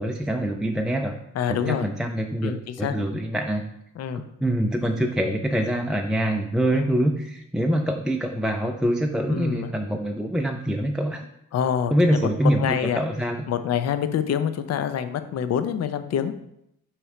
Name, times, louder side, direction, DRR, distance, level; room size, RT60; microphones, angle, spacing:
voice 1, 0.0-1.2 1.5-3.6 4.1-11.2 11.9-13.4, equal, ahead, 2 dB, 0.4 m, -25 dB
voice 2, 1.3-1.9 2.4-3.0 4.0-4.2 6.7-7.0 9.3-9.7 11.5-12.3 12.6-13.0 13.5-16.4, left 8 dB, 55° left, 10 dB, 0.6 m, -26 dB
6.0 x 3.2 x 4.9 m, 0.79 s
cardioid pair, 90°, 30 cm